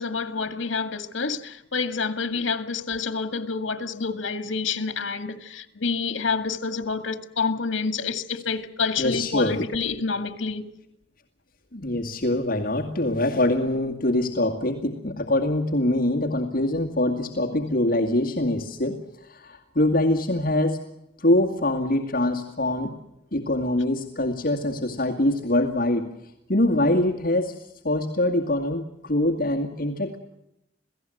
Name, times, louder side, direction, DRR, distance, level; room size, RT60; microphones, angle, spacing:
voice 1, 0.0-10.7, left 4 dB, 80° left, 2.0 m, -28 dB
voice 2, 9.0-9.6 11.7-19.0 19.3-20.8 21.2-22.9 23.3-26.1 26.5-27.5 27.8-30.2, left 1 dB, 50° left, 2.2 m, -24 dB
28.0 x 17.5 x 7.9 m
head